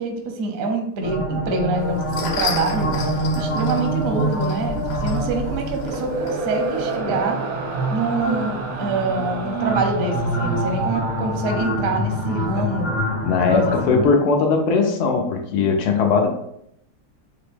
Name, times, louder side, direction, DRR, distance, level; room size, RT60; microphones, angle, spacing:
voice 1, 0.0-2.9 3.4-7.4 7.9-12.9 13.4-13.7, right 3 dB, 65° right, 4 dB, 0.9 m, -25 dB
sound 1, 1.0-14.1, right 1 dB, 45° left, 0.8 m, -26 dB
sound 2, 1.8-7.0, left 3 dB, 60° left, 1.5 m, -33 dB
sound 3, 4.6-12.0, right 3 dB, 85° right, 1.6 m, -31 dB
voice 2, 13.2-16.3, left 4 dB, 80° left, 3 dB, 1.6 m, -19 dB
4.7 x 2.9 x 3.6 m, 0.74 s
omnidirectional pair, 2.3 m